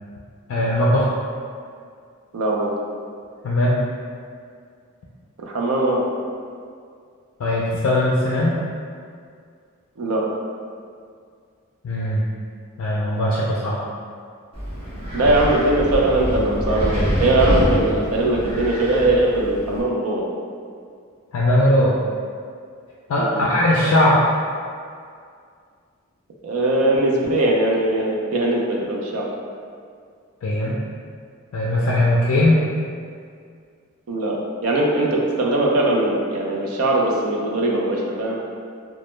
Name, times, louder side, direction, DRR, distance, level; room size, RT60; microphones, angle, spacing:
voice 1, 0.5-1.1 3.4-3.8 7.4-8.6 11.8-12.2 12.8-13.8 21.3-22.0 23.1-24.2 30.4-30.8 31.5-32.7, left 1 dB, 70° left, -6 dB, 0.3 m, -19 dB
voice 2, 2.3-2.7 5.4-6.0 10.0-10.2 15.1-20.2 23.2-23.5 26.4-29.3 34.1-34.4 34.6-38.4, right 1 dB, 85° right, -2 dB, 0.4 m, -20 dB
Wind, 14.5-19.8, equal, 25° right, 0.8 m, -25 dB
2.1 x 2.0 x 3.0 m, 2.2 s
head